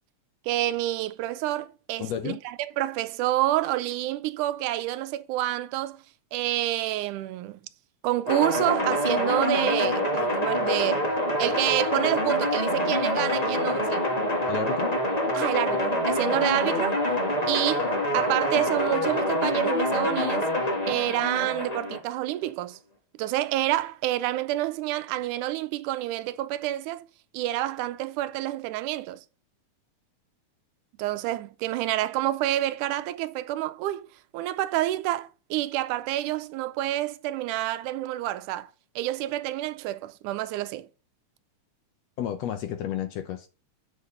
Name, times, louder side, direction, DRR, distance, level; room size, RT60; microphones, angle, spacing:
voice 1, 0.5-6.0 6.3-7.6 8.0-11.1 11.4-14.1 15.3-17.0 17.5-20.5 20.9-22.8 23.2-27.1 27.3-29.2 31.0-34.1 34.3-38.7 39.0-40.9, right 14 dB, 85° right, 2.1 m, -28 dB
voice 2, 2.0-2.4 14.5-14.9 42.2-43.5, left 10 dB, 75° left, 1.6 m, -31 dB
sound 1, 8.3-22.0, left 1 dB, 30° left, 0.7 m, -26 dB
8.2 x 5.2 x 5.6 m
omnidirectional pair, 3.6 m